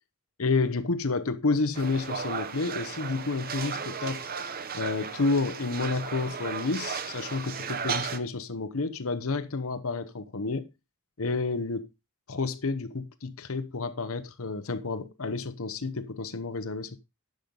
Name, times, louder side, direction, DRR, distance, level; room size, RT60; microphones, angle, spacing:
voice 1, 0.4-4.2 4.7-10.7 11.2-11.9 12.3-17.0, left 3 dB, 65° left, 0.9 m, -30 dB
sound 1, 1.7-8.2, right 6 dB, 40° right, 0.8 m, -35 dB
10.5 x 6.5 x 3.9 m
head